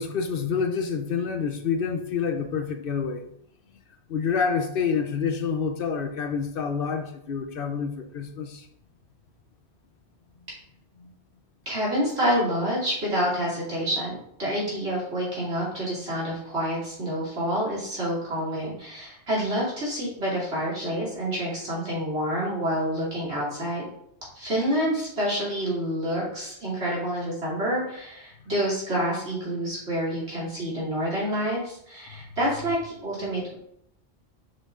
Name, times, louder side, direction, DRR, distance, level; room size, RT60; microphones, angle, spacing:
voice 1, 0.0-3.2 4.1-8.7 11.0-11.1, left 6 dB, 60° left, 7 dB, 0.8 m, -28 dB
voice 2, 11.6-23.9 24.3-33.5, equal, 75° right, -7 dB, 3.0 m, -28 dB
6.2 x 5.1 x 3.7 m, 0.74 s
omnidirectional pair, 1.1 m